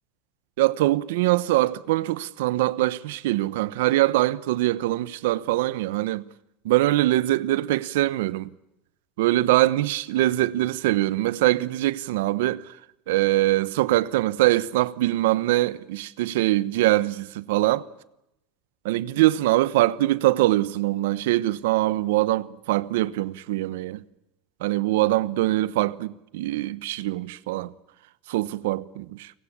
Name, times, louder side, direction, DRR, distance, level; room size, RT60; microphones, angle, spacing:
voice 1, 0.6-6.2 6.6-8.5 9.2-12.7 13.1-17.9 18.8-24.0 24.6-27.7 28.3-29.3, right 16 dB, 85° right, 0.9 m, -23 dB
29.5 x 18.0 x 8.6 m
cardioid pair, 175°, 0 cm